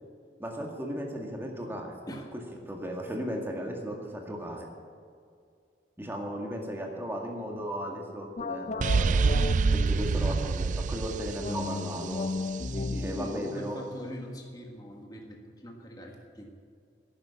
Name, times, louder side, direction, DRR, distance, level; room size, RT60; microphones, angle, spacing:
voice 1, 0.4-1.9 2.7-4.7 6.0-12.3 12.7-13.8, equal, 10° right, 0 dB, 2.0 m, -36 dB
sound 1, 8.4-10.6 11.4-14.7, left 3 dB, 40° left, 0.4 m, -36 dB
sound 2, 8.8-12.6, right 4 dB, 40° right, 0.3 m, -26 dB
voice 2, 12.9-16.5, equal, 20° left, 1 dB, 1.5 m, -42 dB
11.0 x 10.5 x 8.2 m, 2.3 s
head